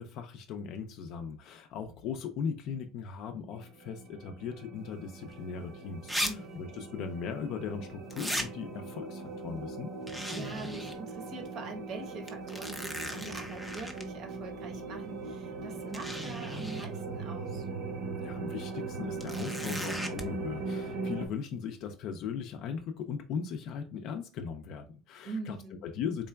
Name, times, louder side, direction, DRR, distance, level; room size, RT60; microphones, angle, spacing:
voice 1, 0.0-9.9 18.2-25.6 25.8-26.3, left 6 dB, 50° left, 0.4 m, -38 dB
sound 1, 3.5-21.3, right 3 dB, 70° right, 1.0 m, -40 dB
sound 2, 5.3-5.4 6.1-6.3 6.6-6.7 8.1-8.5 10.1-11.0 11.4-11.5 12.3-14.0 15.2-15.3 15.9-16.9 19.2-20.2, equal, 5° right, 0.5 m, -37 dB
voice 2, 6.2-6.7 10.3-17.7 25.2-25.8, right 3 dB, 45° right, 0.9 m, -43 dB
3.7 x 3.3 x 2.2 m
cardioid pair, 165°, 0 cm